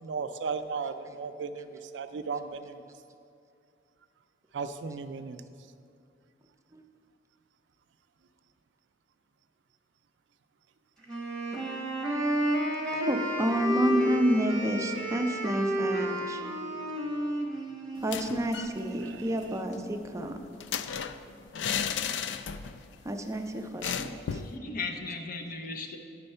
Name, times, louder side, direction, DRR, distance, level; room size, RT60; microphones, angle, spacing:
voice 1, 0.0-2.8 4.5-5.4 19.0-19.2, right 5 dB, 80° right, 10 dB, 0.4 m, -35 dB
Wind instrument woodwind instrument, 11.0-18.9, equal, 5° left, 1.3 m, -31 dB
voice 2, 13.1-16.4 18.0-20.4 23.0-24.2, right 1 dB, 15° right, 5 dB, 0.4 m, -29 dB
sound 1, 18.0-18.8 19.1-19.2 19.4-22.9 23.2-23.3 23.8-24.6, left 7 dB, 75° left, 0.3 m, -34 dB
voice 3, 24.3-26.0, left 4 dB, 50° left, 3 dB, 0.7 m, -36 dB
9.7 x 4.4 x 5.5 m, 2.5 s
head